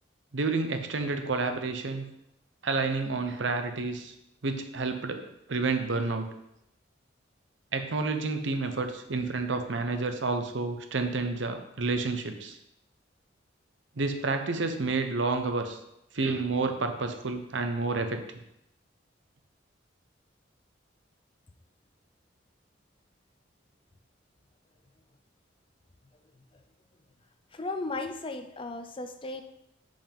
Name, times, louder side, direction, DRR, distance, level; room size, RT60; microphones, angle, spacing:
voice 1, 0.3-2.0 2.6-4.1 4.4-6.3 7.7-12.6 14.0-15.8 16.1-18.2, right 3 dB, 75° right, 7 dB, 0.8 m, -30 dB
voice 2, 27.5-29.4, left 2 dB, 25° left, 7 dB, 0.5 m, -35 dB
5.4 x 5.2 x 5.3 m, 0.81 s
head